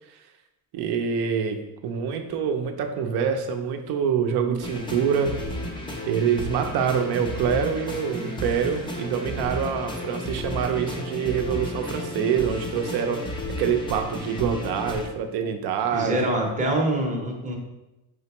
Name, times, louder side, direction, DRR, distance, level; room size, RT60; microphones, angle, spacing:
voice 1, 0.7-5.4 6.1-13.2 13.6-16.3, right 7 dB, 65° right, 6 dB, 0.7 m, -25 dB
sound 1, 4.6-15.1, left 1 dB, 10° left, 0.4 m, -33 dB
voice 2, 15.9-17.6, right 1 dB, 15° right, -1 dB, 0.7 m, -25 dB
5.1 x 3.3 x 2.9 m, 0.97 s
cardioid pair, 145°, 43 cm